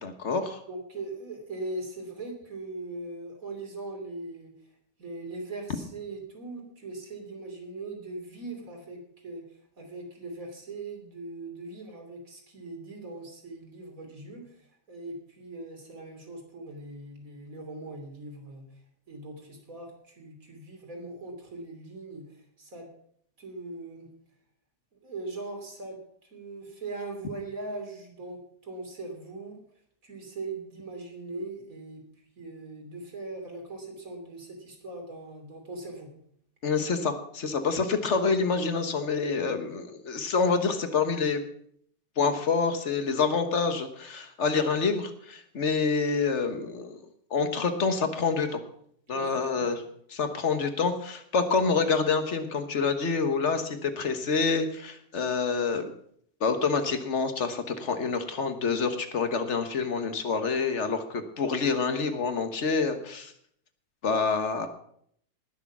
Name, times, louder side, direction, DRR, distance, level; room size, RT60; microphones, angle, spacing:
voice 1, 0.0-0.6 36.6-41.4 42.2-47.0 47.3-48.6 49.1-49.8 50.1-55.9 56.4-63.3 64.0-64.7, left 4 dB, 50° left, 8 dB, 1.5 m, -27 dB
voice 2, 0.7-4.5 5.0-9.4 9.8-18.7 19.1-22.9 23.4-24.1 24.9-29.6 30.0-32.0 32.4-36.1 49.1-49.8, right 2 dB, 60° right, 2 dB, 3.6 m, -40 dB
19.5 x 6.7 x 6.0 m, 0.66 s
omnidirectional pair, 1.7 m